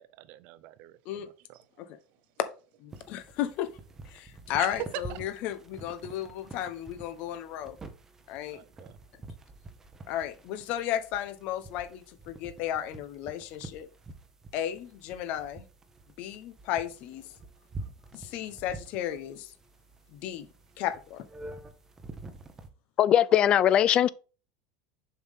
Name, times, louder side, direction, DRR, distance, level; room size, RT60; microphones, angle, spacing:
voice 1, 0.0-1.8 4.6-5.2 8.5-8.9, right 13 dB, 55° right, 0.6 m, -42 dB
voice 2, 2.8-3.7 4.1-7.8 8.3-8.6 10.1-13.9 14.5-15.6 16.2-17.3 18.1-19.5 20.1-20.5 20.8-21.2, left 11 dB, 50° left, 1.0 m, -34 dB
sound 1, 2.9-22.7, right 2 dB, 15° right, 1.0 m, -48 dB
voice 3, 23.0-24.1, left 10 dB, 35° left, 0.4 m, -20 dB
7.0 x 5.5 x 3.7 m
supercardioid pair, 145°, 3 cm